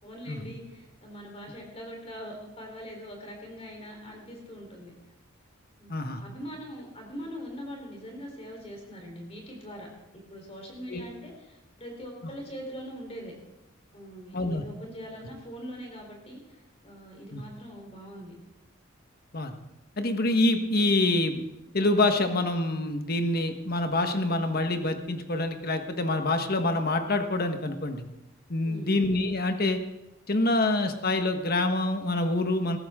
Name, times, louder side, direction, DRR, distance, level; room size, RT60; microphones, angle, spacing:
voice 1, 0.0-4.9 5.8-5.9 6.2-9.9 10.1-13.3 13.9-18.4 28.6-28.9, equal, 30° left, 1 dB, 3.9 m, -42 dB
voice 2, 5.9-6.2 10.9-11.0 14.3-14.6 17.3-17.4 19.3-19.5 20.0-21.4 21.7-28.0 28.5-29.8 30.3-32.8, left 2 dB, 50° left, 6 dB, 1.4 m, -26 dB
19.0 x 14.5 x 3.7 m, 0.93 s
head